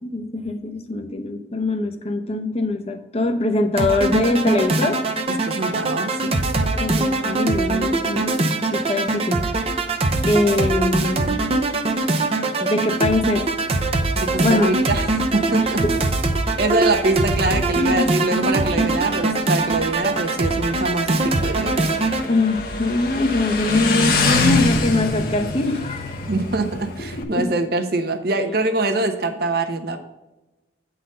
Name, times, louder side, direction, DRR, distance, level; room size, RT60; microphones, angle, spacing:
voice 1, 0.0-5.0 6.7-8.3 8.7-9.5 10.3-11.4 12.6-13.4 14.4-14.7 15.8-16.0 17.8-18.1 22.3-26.3 27.1-27.5, left 2 dB, 35° left, 6 dB, 0.8 m, -22 dB
sound 1, 3.8-22.3, right 2 dB, 35° right, 0.7 m, -22 dB
voice 2, 5.5-6.3 14.1-16.0 16.6-21.8 26.3-30.0, right 2 dB, 60° right, 7 dB, 1.0 m, -24 dB
Motorcycle, 14.3-27.2, left 3 dB, 55° left, 1.2 m, -27 dB
9.0 x 4.0 x 6.6 m, 1.0 s
head